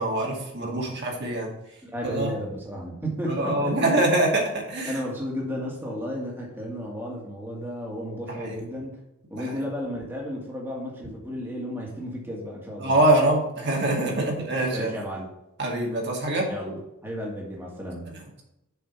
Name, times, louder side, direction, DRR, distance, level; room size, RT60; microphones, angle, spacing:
voice 1, 0.0-1.5 2.0-2.3 3.3-5.0 8.3-8.6 9.4-9.6 12.8-14.9 15.6-16.5 18.1-18.4, right 1 dB, 50° right, -1 dB, 2.1 m, -24 dB
voice 2, 1.8-3.8 4.8-9.0 9.3-13.0 14.1-15.3 16.5-18.1, equal, 10° right, -3 dB, 1.7 m, -33 dB
6.9 x 4.9 x 5.8 m, 0.87 s
head